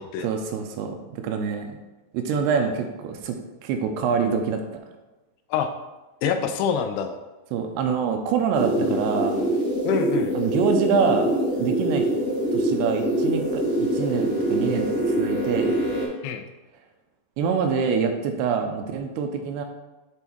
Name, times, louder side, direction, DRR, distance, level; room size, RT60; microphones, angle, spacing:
voice 1, 0.2-1.7 2.1-4.8 7.5-9.4 10.3-11.3 11.6-12.1 12.5-15.8 17.4-19.6, right 6 dB, 85° right, 4 dB, 2.7 m, -25 dB
voice 2, 6.2-7.2 8.7-9.0 9.8-10.4 16.2-16.5, left 7 dB, 85° left, 7 dB, 2.7 m, -26 dB
sound 1, 8.5-16.0, right 1 dB, 45° right, 0.6 m, -24 dB
8.1 x 3.5 x 4.5 m, 1.1 s
omnidirectional pair, 4.8 m